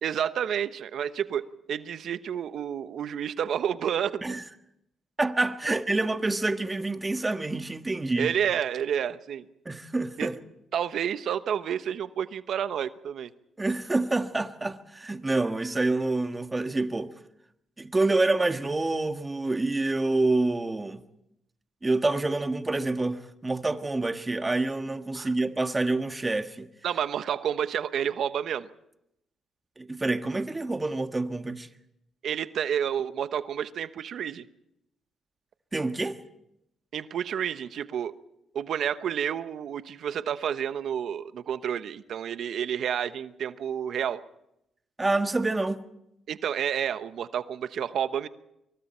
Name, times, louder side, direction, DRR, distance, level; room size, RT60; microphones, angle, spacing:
voice 1, 0.0-4.4 8.2-9.5 10.2-10.3 10.7-13.3 25.1-25.3 26.8-28.7 32.2-34.5 36.9-38.1 38.5-44.2 46.3-48.3, right 9 dB, 70° right, 1.0 m, -30 dB
voice 2, 5.2-8.3 9.6-10.4 13.6-17.1 17.8-21.0 21.8-26.7 29.8-31.7 35.7-36.2 45.0-45.8, right 2 dB, 20° right, 1.6 m, -27 dB
26.0 x 24.0 x 4.5 m
cardioid pair, 70°, 0 cm